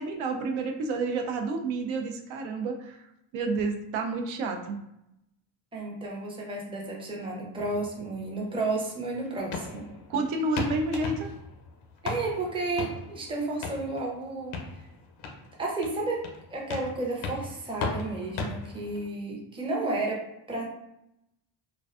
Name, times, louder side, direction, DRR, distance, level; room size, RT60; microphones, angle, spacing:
voice 1, 0.0-3.0 3.3-4.8 10.1-11.3, right 3 dB, 80° right, 4 dB, 0.5 m, -30 dB
voice 2, 5.7-9.9 12.0-14.8 15.6-16.2 16.5-20.2 20.5-20.7, right 2 dB, 10° right, -2 dB, 0.5 m, -32 dB
sound 1, 7.6-19.1, left 3 dB, 85° left, 0.6 m, -38 dB
2.4 x 2.2 x 2.4 m, 0.84 s
cardioid pair, 115°, 46 cm